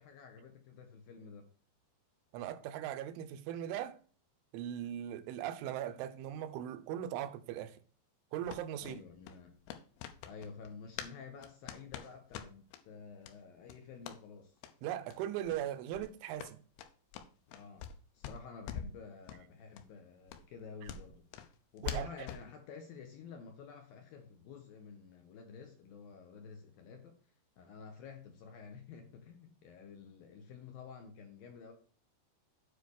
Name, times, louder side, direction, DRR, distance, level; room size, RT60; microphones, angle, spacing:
voice 1, 0.0-1.5 8.8-9.6 10.2-14.6 17.5-17.9 18.1-21.3 21.7-27.2 27.6-31.7, left 5 dB, 70° left, 2.3 m, -51 dB
voice 2, 2.3-4.0 4.5-7.8 8.3-9.0 14.8-16.6 21.8-22.1, right 11 dB, 90° right, 3.2 m, -39 dB
sound 1, 8.5-11.2 11.4-12.8 13.2-13.4 13.6-14.2 14.6-14.7 15.1-15.2 15.4-15.6 15.9-18.0 18.2-19.0 19.3-19.4 19.7-19.8 20.3-22.5, left 7 dB, 85° left, 3.3 m, -45 dB
8.4 x 5.0 x 6.4 m
omnidirectional pair, 5.4 m